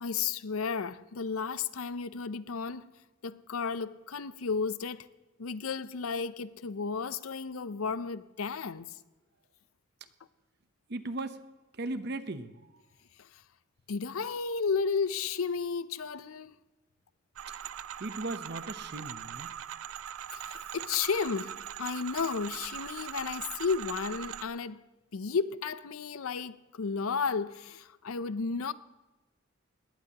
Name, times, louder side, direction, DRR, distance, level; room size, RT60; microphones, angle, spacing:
voice 1, 0.0-2.9 3.2-5.1 5.4-8.9 13.9-16.5 20.3-24.8 25.1-28.7, left 5 dB, 90° left, 0.6 m, -33 dB
voice 2, 10.9-11.4 11.7-12.6 18.0-19.5, right 2 dB, 50° right, 0.8 m, -37 dB
sound 1, 17.4-24.5, right 9 dB, 85° right, 0.4 m, -41 dB
20.0 x 18.0 x 2.9 m
head